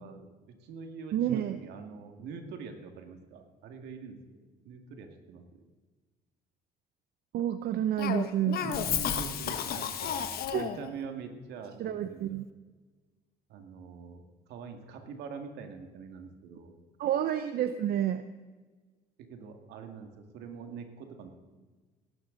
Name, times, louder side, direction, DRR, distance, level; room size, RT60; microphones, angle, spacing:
voice 1, 0.0-1.1 1.5-4.4 4.6-5.6 8.6-10.2 10.6-12.4 13.5-16.8 19.2-21.3, right 5 dB, 80° right, 5 dB, 2.2 m, -44 dB
voice 2, 1.1-1.6 7.3-8.6 10.5-10.7 11.8-12.5 17.0-18.2, right 10 dB, 65° right, 10 dB, 0.7 m, -29 dB
Cough, 8.0-10.9, left 9 dB, 65° left, 1.1 m, -32 dB
17.0 x 12.5 x 4.0 m, 1.3 s
cardioid pair, 110°, 17 cm